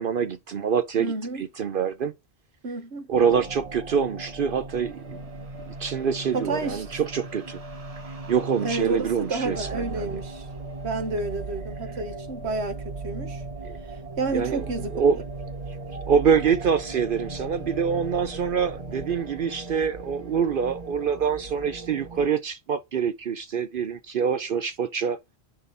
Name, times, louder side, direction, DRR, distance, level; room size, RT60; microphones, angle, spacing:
voice 1, 0.0-1.1 1.4-2.1 3.1-5.2 5.7-7.6 8.3-10.0 13.6-13.8 14.3-14.6 14.9-15.2 16.1-25.2, right 7 dB, 60° right, 0.8 m, -25 dB
voice 2, 1.0-1.4 2.6-3.1 6.3-7.0 8.6-10.5 10.8-13.4 13.8-15.0, right 3 dB, 80° right, 1.6 m, -30 dB
sound 1, 3.1-22.3, right 3 dB, 35° right, 1.0 m, -38 dB
10.0 x 3.8 x 3.9 m
omnidirectional pair, 1.1 m